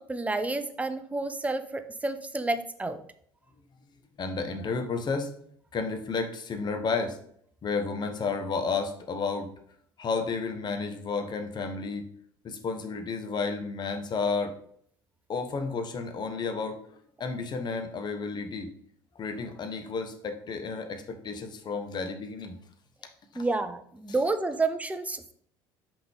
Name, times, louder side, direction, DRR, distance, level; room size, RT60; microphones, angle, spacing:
voice 1, 0.1-3.0 23.4-25.3, right 3 dB, 10° right, 10 dB, 0.6 m, -30 dB
voice 2, 4.2-5.3 5.7-7.2 7.6-9.5 10.0-12.0 12.4-14.5 15.3-16.8 17.2-18.7 19.1-22.6, left 4 dB, 35° left, 6 dB, 1.0 m, -31 dB
5.8 x 5.2 x 3.5 m, 0.63 s
figure-of-eight pair, 60°, 13 cm